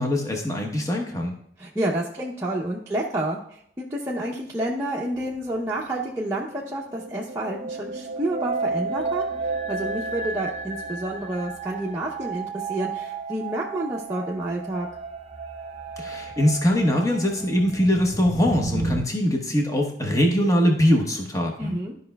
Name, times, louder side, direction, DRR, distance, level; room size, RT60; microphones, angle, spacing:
voice 1, 0.0-1.3 16.0-21.7, equal, 15° left, 1 dB, 0.9 m, -22 dB
voice 2, 1.6-14.9 21.6-21.9, right 1 dB, 15° right, -4 dB, 0.7 m, -29 dB
sound 1, 5.3-19.0, right 3 dB, 40° right, 0.9 m, -32 dB
13.0 x 5.4 x 2.3 m, 0.68 s
head